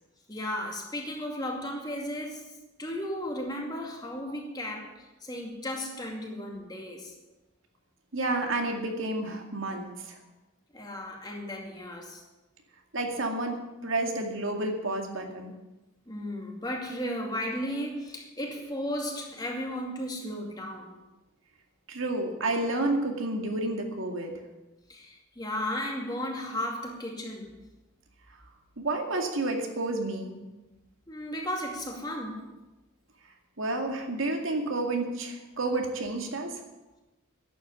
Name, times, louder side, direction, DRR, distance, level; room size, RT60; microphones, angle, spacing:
voice 1, 0.3-7.1 10.7-12.2 16.1-20.9 24.9-27.6 31.1-32.5, left 1 dB, 20° left, 0 dB, 2.3 m, -35 dB
voice 2, 8.1-10.2 12.9-13.6 13.8-15.5 21.9-24.3 28.8-30.3 33.6-36.5, right 2 dB, 90° right, 3 dB, 2.2 m, -30 dB
11.0 x 8.3 x 9.6 m, 1.0 s
head